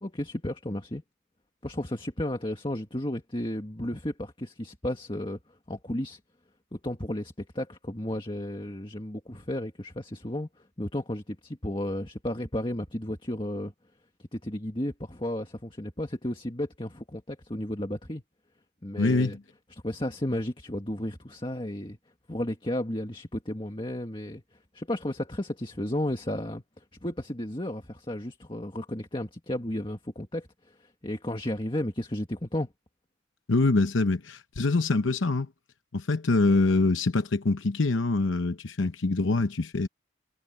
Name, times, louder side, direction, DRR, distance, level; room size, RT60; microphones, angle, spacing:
voice 1, 0.0-1.0 1.6-5.4 5.7-6.2 6.7-10.5 10.8-13.7 14.2-18.2 18.8-19.4 19.7-22.0 22.3-24.4 24.7-32.7, left 1 dB, 25° left, 1.9 m, -33 dB
voice 2, 19.0-19.4 33.5-35.5 35.9-39.9, left 3 dB, 80° left, 0.8 m, -24 dB
head